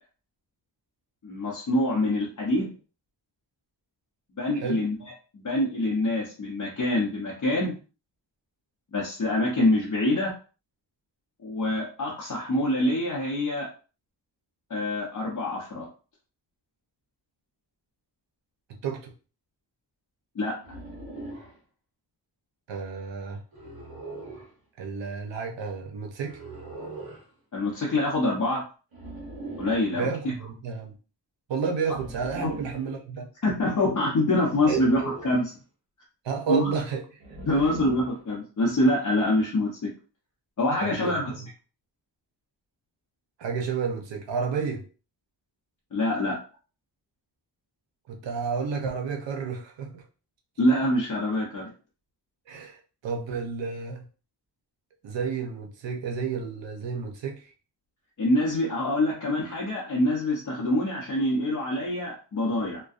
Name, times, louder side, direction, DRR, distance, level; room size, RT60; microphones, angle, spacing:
voice 1, 1.2-2.7 4.4-5.0 5.3-7.7 8.9-10.3 11.4-13.7 14.7-15.9 20.3-20.5 27.5-28.6 29.6-30.1 32.4-32.5 33.4-35.5 36.5-36.7 37.5-39.9 40.6-41.3 45.9-46.4 50.6-51.7 58.2-62.8, left 1 dB, 45° left, -4 dB, 0.7 m, -25 dB
voice 2, 18.7-19.1 22.7-23.4 24.8-26.4 29.9-30.9 31.5-33.3 34.7-34.9 36.2-37.0 40.8-41.5 43.4-44.8 48.1-50.0 52.5-52.8 53.0-54.1 55.0-57.5, right 5 dB, 80° right, 3 dB, 0.7 m, -31 dB
sound 1, 20.6-21.6 23.5-24.5 26.3-27.3 28.9-29.9 31.9-32.9 34.5-35.5 37.2-38.2, right 2 dB, 55° right, 1.0 m, -40 dB
2.6 x 2.2 x 2.4 m, 0.35 s
wide cardioid pair, 100°, 43 cm